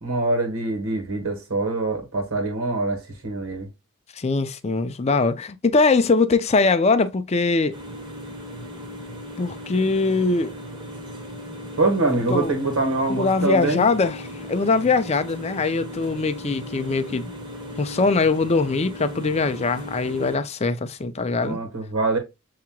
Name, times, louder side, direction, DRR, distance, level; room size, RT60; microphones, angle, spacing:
voice 1, 0.0-3.7 11.8-13.9 21.4-22.2, right 2 dB, 65° right, 1.5 m, -24 dB
voice 2, 4.1-7.8 9.4-10.5 12.3-12.5 13.1-17.3 17.8-21.6, left 3 dB, 30° left, 0.4 m, -22 dB
sound 1, 7.7-20.4, equal, 20° right, 1.0 m, -37 dB
7.2 x 2.8 x 2.2 m
head